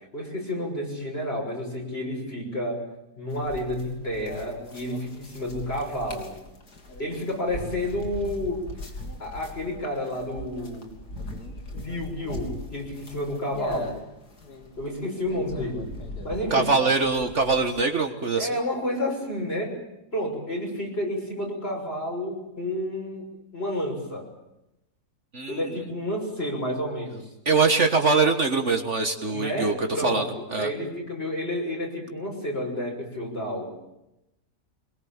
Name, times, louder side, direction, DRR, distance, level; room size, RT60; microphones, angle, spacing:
voice 1, 0.1-2.8 3.2-6.3 7.0-8.6 9.2-10.9 11.7-13.9 14.8-15.9 16.2-16.7 18.4-19.8 20.1-23.3 23.5-24.3 25.5-27.2 29.3-33.7, left 1 dB, 40° left, 1 dB, 6.8 m, -30 dB
sound 1, 3.3-17.8, left 1 dB, 85° left, 3.7 m, -40 dB
voice 2, 16.5-18.5 25.3-25.8 27.5-30.7, right 4 dB, 50° right, 5 dB, 1.7 m, -23 dB
25.0 x 21.5 x 8.8 m, 0.89 s
omnidirectional pair, 1.7 m